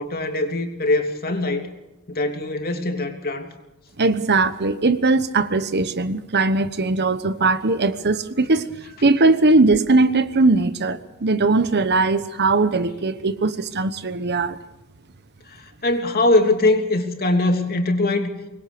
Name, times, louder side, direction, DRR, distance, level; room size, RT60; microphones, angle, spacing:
voice 1, 0.0-1.7 2.1-3.5 15.5-18.3, left 2 dB, 45° left, 3.1 m, -22 dB
voice 2, 4.0-14.6, right 3 dB, 50° right, 1.1 m, -20 dB
25.0 x 21.0 x 6.8 m
head